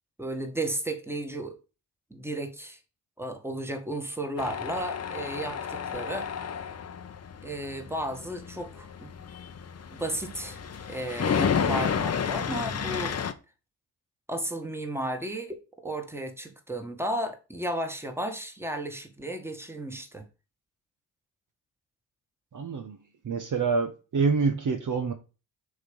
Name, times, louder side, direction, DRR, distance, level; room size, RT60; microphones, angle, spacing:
voice 1, 0.2-1.6 2.1-2.8 3.2-6.3 7.4-9.1 9.9-10.6 10.9-13.2 14.3-15.5 15.8-20.2, right 1 dB, 5° right, 1.7 m, -34 dB
Tools, 4.4-13.3, left 7 dB, 35° left, 0.8 m, -31 dB
voice 2, 22.5-23.0 23.2-25.1, right 4 dB, 40° right, 1.0 m, -26 dB
6.5 x 3.3 x 5.3 m
hypercardioid pair, 45°, 45 cm